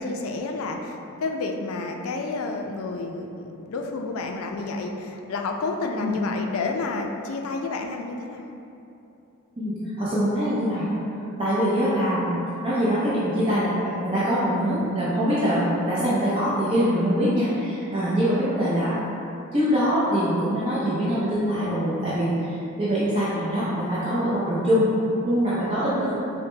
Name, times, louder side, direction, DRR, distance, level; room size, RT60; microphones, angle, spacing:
voice 1, 0.0-8.5 18.0-18.5, left 3 dB, 70° left, 3 dB, 0.4 m, -30 dB
voice 2, 9.6-11.0 11.4-12.4 12.6-13.7 14.0-18.9 19.5-24.9 25.2-26.2, equal, 25° right, -11 dB, 0.6 m, -23 dB
4.8 x 2.1 x 3.2 m, 2.8 s
head